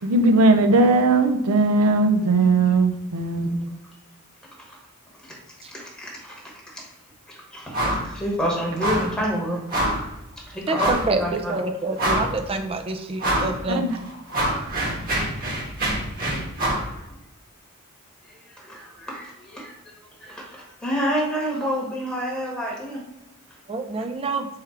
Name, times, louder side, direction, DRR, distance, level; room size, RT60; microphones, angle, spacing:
voice 1, 0.0-3.6 13.7-14.0 24.0-24.1, right 2 dB, 70° right, 7 dB, 0.6 m, -19 dB
voice 2, 5.7-6.4 6.7-6.9 7.3-7.8 8.0-9.6 10.5-11.6 18.6-19.7 20.2-23.0, equal, 5° left, -4 dB, 1.1 m, -28 dB
sound 1, 7.7-8.1 8.3-8.5 8.8-9.1 9.7-10.1 10.7-11.1 11.6-11.7 11.9-12.5 13.2-13.5 13.9-16.9, right 1 dB, 40° right, 1.3 m, -25 dB
voice 3, 11.1-13.9 23.7-24.5, right 3 dB, 25° right, 6 dB, 0.4 m, -27 dB
3.6 x 3.4 x 4.4 m, 0.92 s
head